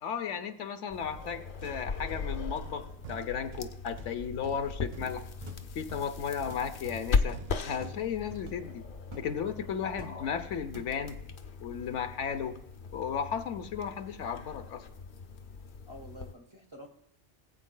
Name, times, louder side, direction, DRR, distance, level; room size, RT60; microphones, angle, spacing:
voice 1, 0.0-5.3 5.7-8.9 9.2-11.2 11.6-12.6 12.9-14.8, left 7 dB, 80° left, 8 dB, 1.0 m, -35 dB
sound 1, 0.9-16.3, left 5 dB, 55° left, 0.7 m, -38 dB
sound 2, 1.1-9.1, right 3 dB, 75° right, 0.3 m, -49 dB
sound 3, 5.5-5.7 6.5-6.7 7.3-7.4 7.8-8.0 8.5-8.7 9.1-9.3 10.0-10.3 10.7-11.0, left 1 dB, 45° right, 1.2 m, -47 dB
voice 2, 15.9-16.9, left 1 dB, 25° right, 3 dB, 1.0 m, -48 dB
19.0 x 8.2 x 2.2 m, 0.76 s
omnidirectional pair, 1.2 m